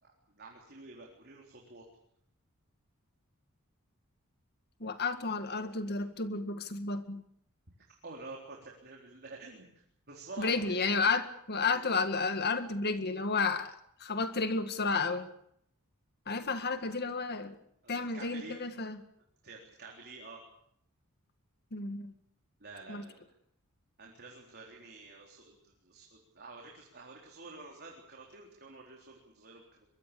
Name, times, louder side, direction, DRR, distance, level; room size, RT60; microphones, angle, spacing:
voice 1, 0.0-1.9 7.9-10.8 11.7-11.8 17.8-18.6 19.4-20.4 22.6-23.3 24.0-29.6, right 3 dB, 50° right, 0 dB, 4.0 m, -49 dB
voice 2, 4.8-7.2 10.4-15.3 16.3-17.6 17.9-19.0 21.7-22.1 22.9-23.0, left 4 dB, 50° left, 9 dB, 1.9 m, -32 dB
24.5 x 22.5 x 7.0 m, 0.71 s
head